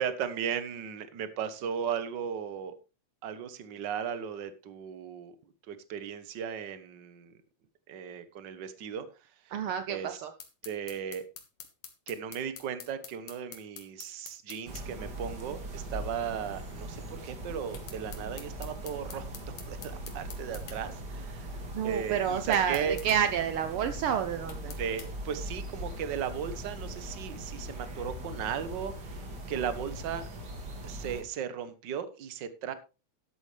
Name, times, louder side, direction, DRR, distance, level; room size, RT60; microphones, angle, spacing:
voice 1, 0.0-2.7 3.2-5.4 5.7-7.3 7.9-9.1 9.4-9.5 9.9-10.2 10.6-11.3 12.1-19.3 19.7-21.5 21.8-23.0 24.7-30.3 30.8-32.7, right 8 dB, 55° right, 12 dB, 1.2 m, -36 dB
voice 2, 9.5-10.3 21.7-24.7, right 8 dB, 80° right, 9 dB, 1.2 m, -29 dB
sound 1, 10.4-14.9 17.7-20.8 22.5-23.2 24.5-25.1, left 7 dB, 65° left, 2.9 m, -47 dB
sound 2, 14.7-31.2, right 1 dB, 35° right, 2.5 m, -40 dB
12.5 x 11.0 x 3.3 m, 0.31 s
omnidirectional pair, 3.4 m